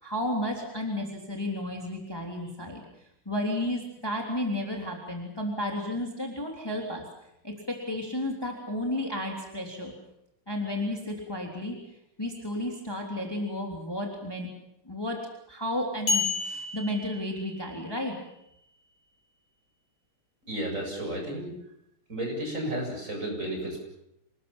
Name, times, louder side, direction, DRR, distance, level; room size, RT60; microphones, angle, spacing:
voice 1, 0.0-2.8 3.2-7.1 7.4-9.9 10.5-11.8 12.2-14.5 14.8-15.2 15.5-18.2, left 1 dB, 10° left, 0 dB, 3.3 m, -32 dB
sound 1, 16.1-17.9, left 4 dB, 65° left, 4.6 m, -31 dB
voice 2, 20.4-21.5 22.1-23.8, right 1 dB, 35° right, 1 dB, 8.1 m, -32 dB
27.0 x 20.5 x 7.4 m, 0.81 s
omnidirectional pair, 2.4 m